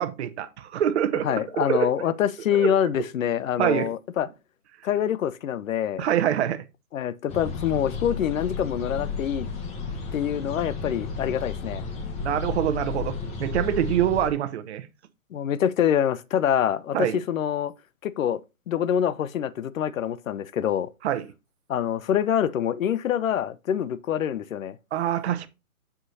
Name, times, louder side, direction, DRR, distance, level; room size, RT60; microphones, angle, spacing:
voice 1, 0.0-2.1 2.6-2.7 3.6-3.9 6.0-6.6 12.2-14.9 16.9-17.2 21.0-21.3 24.9-25.5, right 10 dB, 50° right, 0.9 m, -25 dB
voice 2, 1.2-4.3 4.8-6.1 6.9-9.5 10.1-11.8 15.3-17.7 18.0-18.4 18.7-20.9 21.7-24.8, left 9 dB, 70° left, 0.7 m, -25 dB
sound 1, 7.3-14.3, left 4 dB, 15° left, 0.9 m, -33 dB
7.8 x 6.2 x 2.7 m
hypercardioid pair, 140°, 42 cm